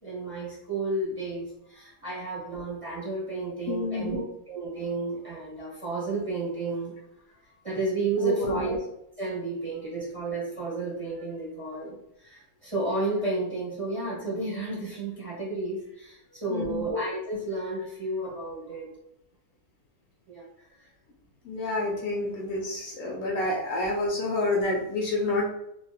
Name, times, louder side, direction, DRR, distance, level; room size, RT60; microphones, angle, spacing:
voice 1, 0.0-7.0 7.4-8.8 9.2-18.9 20.3-20.4 20.8-20.9, right 3 dB, 25° right, -6 dB, 1.0 m, -32 dB
voice 2, 3.7-4.2 8.2-8.6 16.5-16.8 21.4-25.5, left 2 dB, 70° left, -2 dB, 1.0 m, -28 dB
3.0 x 2.6 x 2.4 m, 0.79 s
omnidirectional pair, 1.6 m